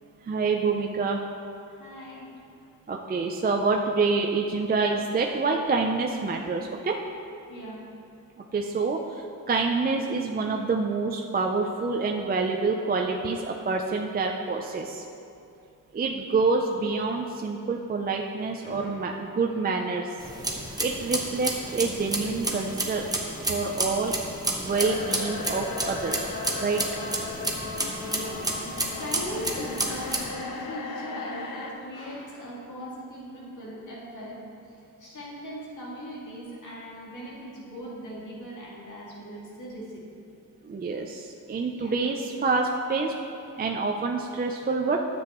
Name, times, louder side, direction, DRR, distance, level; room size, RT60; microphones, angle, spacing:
voice 1, 0.2-1.2 2.9-7.0 8.5-15.0 15.9-20.1 20.8-23.0 23.5-24.1 24.5-26.8 40.6-43.1 43.6-45.0, right 4 dB, 30° right, 1 dB, 0.4 m, -27 dB
voice 2, 1.7-2.3 7.5-7.8 18.6-19.1 19.5-19.6 28.0-28.4 29.0-40.0 41.7-42.0, equal, 60° left, -6 dB, 2.2 m, -39 dB
sound 1, 20.2-30.3, right 1 dB, 10° right, 0.9 m, -31 dB
sound 2, 24.7-31.7, left 3 dB, 80° left, 0.8 m, -36 dB
12.5 x 7.8 x 3.0 m, 2.6 s
wide cardioid pair, 160°, 33 cm